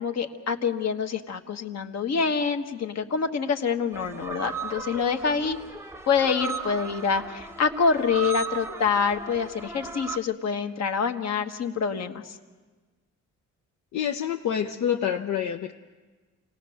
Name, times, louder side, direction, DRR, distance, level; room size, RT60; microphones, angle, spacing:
voice 1, 0.0-5.6 6.1-12.4, left 5 dB, 60° left, 5 dB, 1.6 m, -26 dB
sound 1, 3.9-10.2, right 5 dB, 10° right, 0.8 m, -36 dB
voice 2, 13.9-15.7, left 9 dB, 75° left, 3 dB, 0.9 m, -27 dB
28.0 x 18.5 x 6.5 m, 1.3 s
cardioid pair, 90°, 30 cm